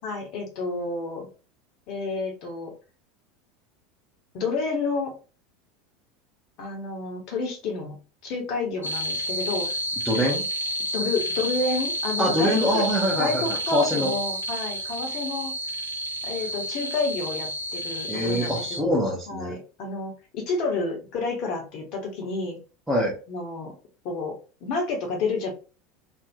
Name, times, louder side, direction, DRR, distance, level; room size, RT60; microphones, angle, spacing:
voice 1, 0.0-1.3 1.9-2.7 4.3-5.1 6.6-8.0 8.2-9.7 10.9-12.9 13.2-15.5 16.2-18.9 19.3-22.6 23.3-23.7 24.0-24.4 24.6-25.5, left 3 dB, 45° left, 2 dB, 0.8 m, -30 dB
sound 1, 8.8-18.8, equal, 75° left, 0.4 m, -30 dB
voice 2, 10.0-10.4 12.2-14.2 18.1-19.5 22.9-23.2, equal, 5° right, -6 dB, 0.9 m, -24 dB
2.6 x 2.3 x 2.3 m, 0.34 s
figure-of-eight pair, 75°, 0 cm